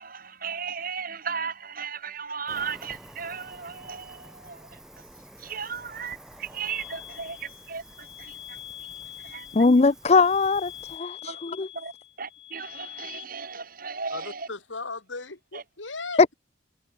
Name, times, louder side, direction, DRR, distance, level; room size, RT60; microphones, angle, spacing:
voice 1, 0.0-4.8 5.4-8.6 9.2-9.5 11.2-11.4 11.7-11.9 12.2-14.5 15.5-15.6, right 6 dB, 50° right, 2.9 m, -36 dB
Cricket, 2.5-11.0, right 1 dB, 5° right, 4.2 m, -49 dB
sound 1, 6.7-13.2, left 13 dB, 65° left, 6.0 m, -44 dB
voice 2, 9.5-11.7 16.2-16.3, left 4 dB, 35° left, 0.5 m, -20 dB
voice 3, 14.1-16.2, left 3 dB, 85° left, 3.0 m, -37 dB
head